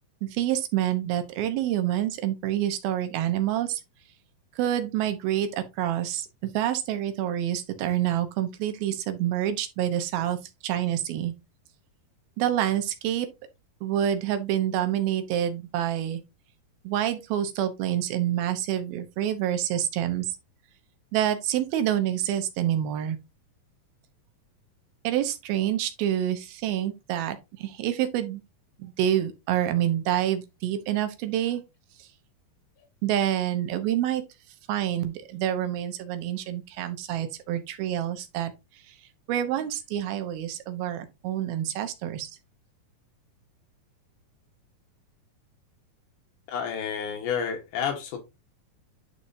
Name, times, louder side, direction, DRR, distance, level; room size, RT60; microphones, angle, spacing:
voice 1, 0.2-3.8 4.6-11.3 12.4-13.3 13.8-16.2 16.8-20.3 21.1-23.2 25.0-28.4 28.8-31.6 32.0-32.1 33.0-34.2 34.7-38.5 38.9-39.0 39.3-42.3, right 11 dB, 90° right, 2.8 m, -27 dB
voice 2, 46.5-48.2, left 7 dB, 70° left, 2.5 m, -30 dB
10.0 x 4.3 x 2.6 m
omnidirectional pair, 4.2 m